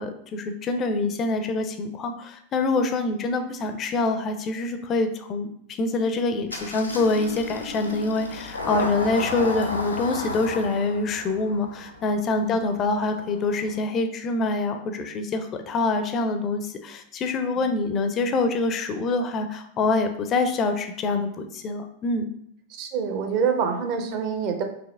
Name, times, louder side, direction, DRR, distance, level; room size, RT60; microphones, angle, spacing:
voice 1, 0.0-22.3, left 3 dB, 30° left, 7 dB, 0.4 m, -25 dB
Engine starting, 6.5-13.8, left 2 dB, 80° left, 0.5 m, -34 dB
voice 2, 22.7-24.6, right 6 dB, 45° right, 5 dB, 0.6 m, -26 dB
4.8 x 2.9 x 2.4 m, 0.69 s
figure-of-eight pair, 90°, 0 cm